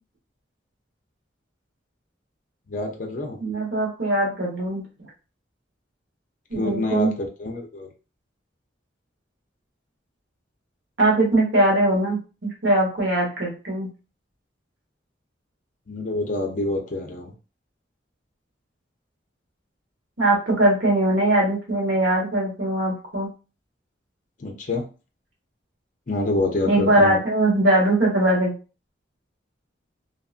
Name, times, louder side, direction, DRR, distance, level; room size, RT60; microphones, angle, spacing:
voice 1, 2.7-3.4 6.5-7.9 15.9-17.3 24.4-24.8 26.1-27.2, left 2 dB, 45° left, 2 dB, 0.5 m, -27 dB
voice 2, 3.4-4.8 6.5-7.1 11.0-13.9 20.2-23.3 26.6-28.5, right 1 dB, 80° right, -3 dB, 1.2 m, -21 dB
2.8 x 2.4 x 2.4 m, 0.33 s
head